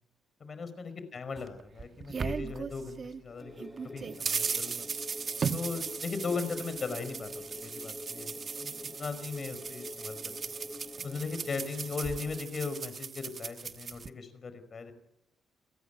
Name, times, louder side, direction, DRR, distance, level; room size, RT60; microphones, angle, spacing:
voice 1, 0.4-4.9 5.5-10.3 11.0-14.9, left 4 dB, 40° left, 11 dB, 5.0 m, -38 dB
sound 1, 1.4-3.2 3.6-14.1, right 5 dB, 45° right, 1.1 m, -37 dB
sound 2, 3.4-12.4, left 2 dB, 5° left, 7.9 m, -46 dB
30.0 x 14.5 x 9.2 m, 0.82 s
cardioid pair, 90°, 0 cm